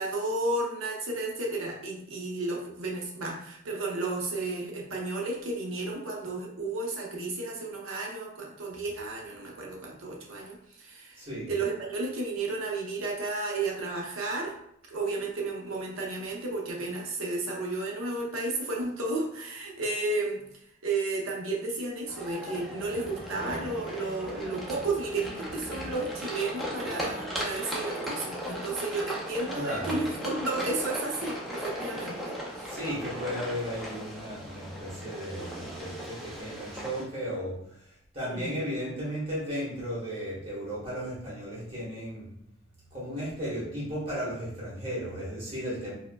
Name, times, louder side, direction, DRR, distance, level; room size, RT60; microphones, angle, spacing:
voice 1, 0.0-11.2 11.5-14.5 14.9-20.4 20.8-32.7 38.2-38.5, right 2 dB, 85° right, -1 dB, 0.7 m, -33 dB
voice 2, 11.2-11.5 29.5-29.9 32.7-37.6 37.8-42.3 42.9-45.9, equal, 25° right, -7 dB, 1.2 m, -35 dB
sound 1, 22.1-37.0, equal, ahead, 0.4 m, -37 dB
4.4 x 2.1 x 2.2 m, 0.72 s
head